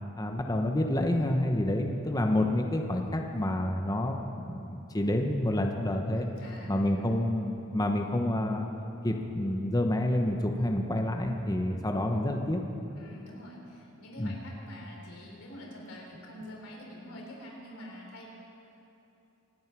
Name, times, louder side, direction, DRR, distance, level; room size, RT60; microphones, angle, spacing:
voice 1, 0.2-6.3 6.7-8.7 9.0-12.6 14.2-14.3, left 1 dB, 15° left, 2 dB, 1.0 m, -28 dB
voice 2, 6.1-6.9 12.9-18.3, left 1 dB, 80° left, -2 dB, 4.1 m, -46 dB
25.5 x 9.3 x 6.1 m, 2.8 s
head